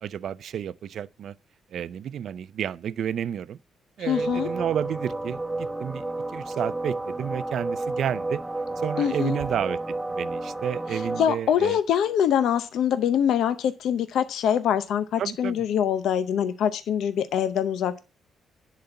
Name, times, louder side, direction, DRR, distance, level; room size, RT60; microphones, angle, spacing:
voice 1, 0.0-1.3 1.7-3.6 4.0-6.1 6.3-8.4 8.8-11.8 15.2-15.6, right 9 dB, 60° right, 0.4 m, -31 dB
voice 2, 4.0-4.5 9.0-9.4 10.9-18.0, left 9 dB, 75° left, 0.7 m, -24 dB
sound 1, 4.1-11.2, right 2 dB, 5° right, 1.0 m, -31 dB
10.5 x 4.2 x 6.7 m
cardioid pair, 130°, 0 cm